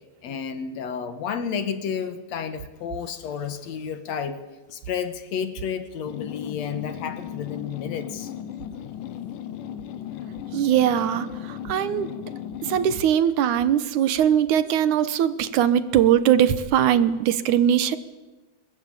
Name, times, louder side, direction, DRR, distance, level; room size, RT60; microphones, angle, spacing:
voice 1, 0.2-4.4 4.7-8.3, left 7 dB, 65° left, 11 dB, 2.4 m, -31 dB
sound 1, 6.1-13.1, left 10 dB, 85° left, 2.6 m, -36 dB
voice 2, 10.5-12.1 12.6-18.0, right 10 dB, 75° right, 14 dB, 2.4 m, -21 dB
22.0 x 21.0 x 8.8 m, 1.2 s
omnidirectional pair, 3.6 m